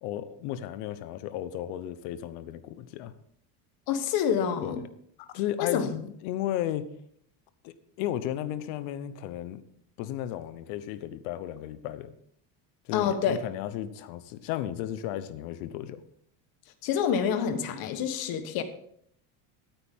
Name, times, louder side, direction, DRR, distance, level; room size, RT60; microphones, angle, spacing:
voice 1, 0.0-3.1 4.6-4.9 5.3-6.9 7.6-9.6 10.0-12.1 12.8-16.0, left 12 dB, 90° left, 12 dB, 1.1 m, -34 dB
voice 2, 3.9-4.8 5.6-5.9 12.9-13.4 16.8-18.6, left 8 dB, 50° left, 9 dB, 1.3 m, -27 dB
13.5 x 9.0 x 3.7 m, 0.69 s
cardioid pair, 175°, 46 cm